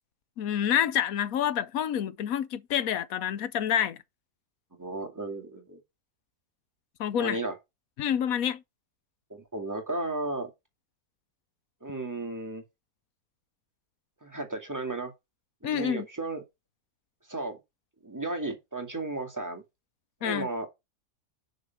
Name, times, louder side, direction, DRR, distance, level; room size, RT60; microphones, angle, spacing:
voice 1, 0.4-4.0 7.0-7.4 8.0-8.6 15.6-16.1 20.2-20.5, left 9 dB, 70° left, 1.1 m, -28 dB
voice 2, 4.8-5.8 7.1-7.5 9.3-10.5 11.8-12.6 14.2-15.1 15.6-16.4 17.3-17.6 18.0-19.6 20.2-20.7, right 2 dB, 10° right, 2.0 m, -34 dB
6.6 x 5.1 x 5.8 m
omnidirectional pair, 1.6 m